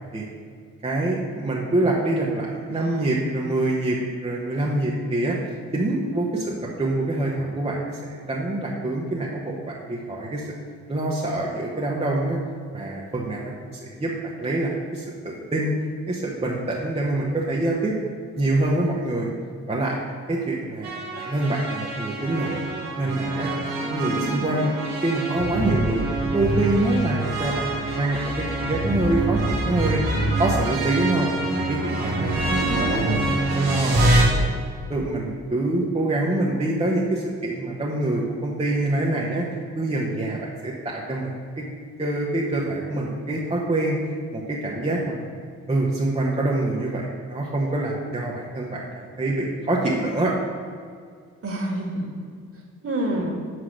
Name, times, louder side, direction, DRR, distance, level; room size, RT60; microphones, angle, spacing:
voice 1, 0.8-5.4 5.7-10.5 10.9-12.4 12.7-13.5 13.8-14.1 14.4-15.7 16.1-17.9 18.4-19.3 19.7-20.0 20.3-22.6 23.0-23.5 23.8-24.8 25.0-31.3 31.6-32.3 32.9-33.1 33.5-33.9 34.3-34.6 34.9-39.4 39.7-41.3 42.0-44.0 44.3-45.2 45.7-50.3, right 2 dB, 15° right, -4 dB, 1.2 m, -25 dB
sound 1, 20.8-34.2, right 2 dB, 80° right, 1.4 m, -25 dB
voice 2, 24.0-24.5 32.5-33.3 51.4-52.0 52.8-53.3, right 1 dB, 40° right, -1 dB, 2.1 m, -28 dB
6.1 x 4.8 x 6.3 m, 2.1 s
hypercardioid pair, 45°, 36 cm